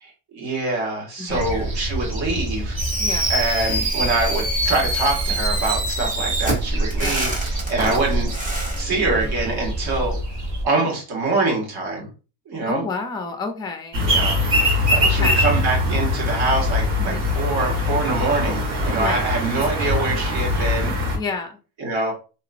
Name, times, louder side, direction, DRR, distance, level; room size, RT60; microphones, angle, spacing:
voice 1, 0.0-2.8 3.3-8.3 8.8-10.2 10.6-12.1 12.5-12.8 14.1-14.4 14.9-21.0 21.8-22.1, right 3 dB, 60° right, -1 dB, 1.8 m, -24 dB
voice 2, 1.2-1.6 3.0-3.3 7.0-7.2 12.7-14.0 15.0-15.4 17.0-17.4 19.0-19.2 21.1-21.6, left 4 dB, 10° left, 5 dB, 0.4 m, -30 dB
sound 1, 1.3-10.6, right 1 dB, 45° right, 1.1 m, -27 dB
Fireworks, 2.8-8.8, right 1 dB, 20° right, 1.3 m, -26 dB
sound 2, 13.9-21.2, left 1 dB, 80° right, 1.6 m, -21 dB
3.0 x 2.9 x 2.4 m, 0.34 s
cardioid pair, 135°, 43 cm